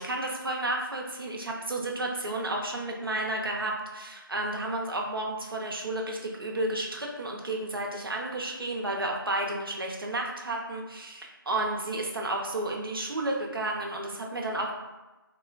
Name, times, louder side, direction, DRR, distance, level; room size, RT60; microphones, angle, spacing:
voice 1, 0.0-14.7, right 2 dB, 70° right, 0 dB, 0.5 m, -32 dB
3.1 x 2.0 x 2.4 m, 1.1 s
figure-of-eight pair, 175°, 12 cm